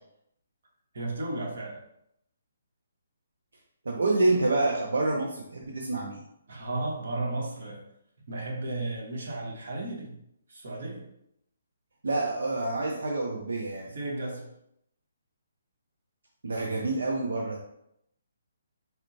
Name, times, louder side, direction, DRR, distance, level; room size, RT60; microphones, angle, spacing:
voice 1, 0.9-1.8 6.5-7.8 8.3-10.2 10.5-11.1 13.8-14.5, right 2 dB, 60° right, -1 dB, 1.2 m, -34 dB
voice 2, 3.9-6.2 12.0-13.9 16.4-17.6, right 2 dB, 90° right, -1 dB, 0.6 m, -27 dB
4.2 x 2.1 x 4.0 m, 0.77 s
hypercardioid pair, 160°, 0 cm